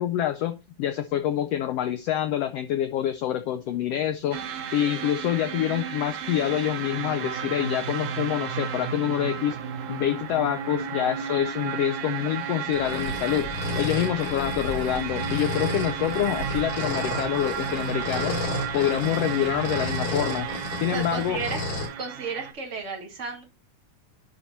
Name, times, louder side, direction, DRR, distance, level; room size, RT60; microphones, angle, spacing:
voice 1, 0.0-4.4 4.7-9.6 9.9-18.4 18.7-20.5 20.8-21.4, left 11 dB, 90° left, 9 dB, 1.4 m, -26 dB
sound 1, 4.3-22.5, right 8 dB, 85° right, 2.4 m, -33 dB
sound 2, 12.7-21.9, left 3 dB, 70° left, 5.9 m, -32 dB
voice 2, 20.8-21.6 22.0-23.4, right 4 dB, 25° right, 2 dB, 1.9 m, -33 dB
10.5 x 4.5 x 4.1 m, 0.26 s
omnidirectional pair, 3.5 m